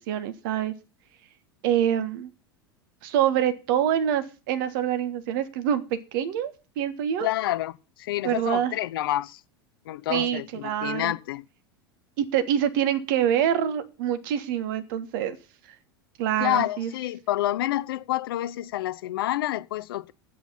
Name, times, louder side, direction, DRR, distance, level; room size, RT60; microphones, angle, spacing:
voice 1, 0.1-0.7 1.6-2.3 3.0-7.3 8.2-8.7 10.1-11.1 12.2-15.4 16.2-16.9, right 10 dB, 60° right, 1.5 m, -26 dB
voice 2, 7.2-9.4 9.9-11.4 16.4-20.1, left 14 dB, 70° left, 0.7 m, -28 dB
10.0 x 8.3 x 5.8 m
hypercardioid pair, 85°, 13 cm